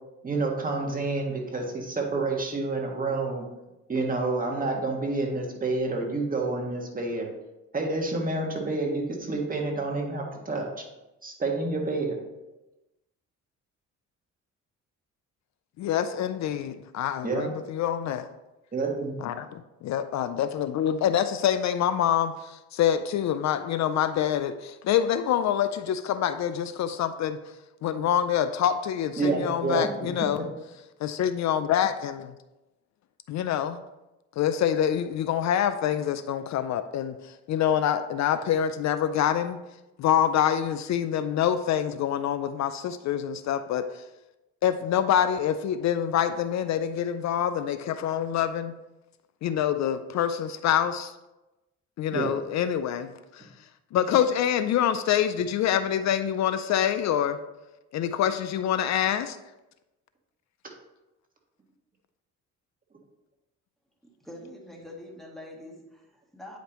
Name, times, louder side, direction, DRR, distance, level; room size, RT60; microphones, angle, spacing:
voice 1, 0.2-3.5 3.9-7.3 7.7-10.7 11.2-12.2 17.2-17.5 18.7-19.1 29.2-29.9 52.1-52.3, right 3 dB, 30° right, 0 dB, 1.6 m, -28 dB
voice 2, 15.8-18.3 19.2-27.4 27.8-30.4 31.0-32.3 33.3-33.8 34.4-39.6 40.0-44.0 44.6-48.7 49.4-51.1 52.0-53.5 53.9-57.4 57.9-59.4, left 9 dB, 65° left, 11 dB, 0.5 m, -26 dB
voice 3, 64.2-66.6, left 1 dB, ahead, -1 dB, 1.6 m, -44 dB
8.9 x 5.1 x 3.0 m, 1.0 s
cardioid pair, 90°, 30 cm